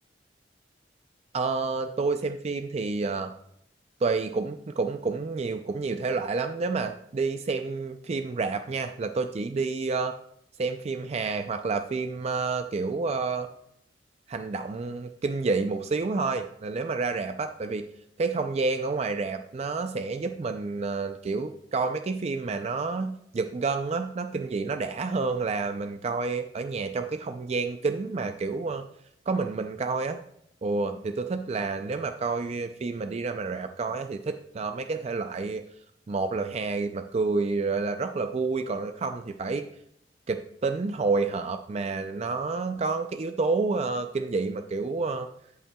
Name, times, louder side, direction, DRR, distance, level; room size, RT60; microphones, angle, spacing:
voice 1, 1.3-3.3 4.0-10.2 10.6-13.5 14.3-17.9 18.2-28.8 29.3-30.2 30.6-35.6 36.1-39.6 40.3-45.3, right 4 dB, 35° right, 8 dB, 0.4 m, -29 dB
15.5 x 5.6 x 2.3 m, 0.73 s
head